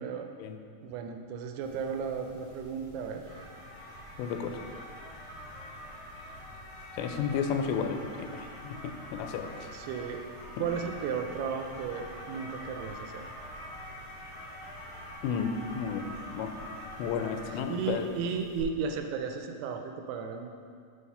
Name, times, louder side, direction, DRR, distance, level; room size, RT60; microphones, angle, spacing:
voice 1, 0.0-0.3 0.8-3.6 8.6-8.7 9.7-10.3 10.6-13.2 17.5-20.5, right 6 dB, 85° right, 5 dB, 2.6 m, -35 dB
sound 1, 1.6-18.6, left 1 dB, 45° left, 1.2 m, -45 dB
voice 2, 4.2-4.6 7.0-9.7 10.6-10.7 15.2-16.5 17.0-18.1, left 6 dB, 90° left, 7 dB, 2.8 m, -33 dB
6.5 x 5.7 x 5.5 m, 2.2 s
omnidirectional pair, 4.9 m